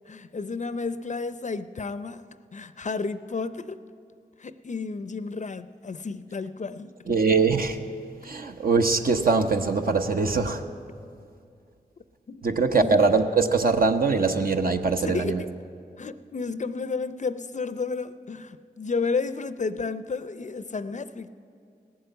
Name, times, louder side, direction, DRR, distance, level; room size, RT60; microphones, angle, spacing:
voice 1, 0.1-2.2 2.5-3.8 4.4-6.9 12.3-12.4 12.7-13.0 15.0-15.5 16.0-21.3, left 4 dB, 45° left, 13 dB, 0.5 m, -32 dB
voice 2, 7.1-7.8 8.2-10.6 12.4-15.4, right 4 dB, 55° right, 5 dB, 1.0 m, -22 dB
17.5 x 7.8 x 8.0 m, 2.4 s
cardioid pair, 45°, 18 cm